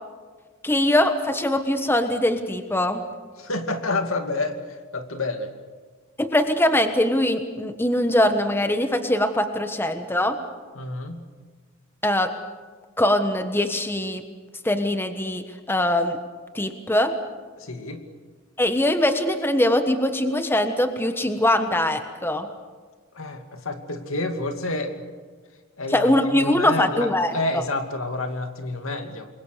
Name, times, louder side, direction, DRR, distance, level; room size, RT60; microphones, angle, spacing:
voice 1, 0.6-3.0 6.2-10.4 12.0-12.3 13.0-14.2 14.6-16.2 16.5-17.1 18.6-22.5 25.9-27.3, left 1 dB, 10° left, 8 dB, 1.3 m, -22 dB
voice 2, 3.4-5.5 10.8-11.2 17.6-18.0 23.1-25.0 25.8-29.3, left 2 dB, 70° left, 6 dB, 2.5 m, -29 dB
27.5 x 22.5 x 6.8 m, 1.5 s
head